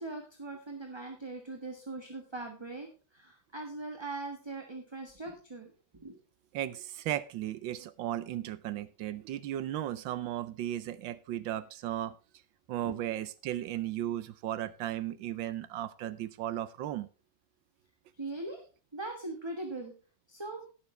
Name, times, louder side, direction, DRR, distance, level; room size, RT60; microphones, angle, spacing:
voice 1, 0.0-6.2 12.8-12.9 18.2-18.6 18.9-19.9 20.3-20.6, right 2 dB, 15° right, 2 dB, 1.2 m, -41 dB
voice 2, 6.5-12.1 12.7-17.1, right 12 dB, 75° right, 16 dB, 1.3 m, -35 dB
18.0 x 6.9 x 3.2 m, 0.34 s
omnidirectional pair, 2.1 m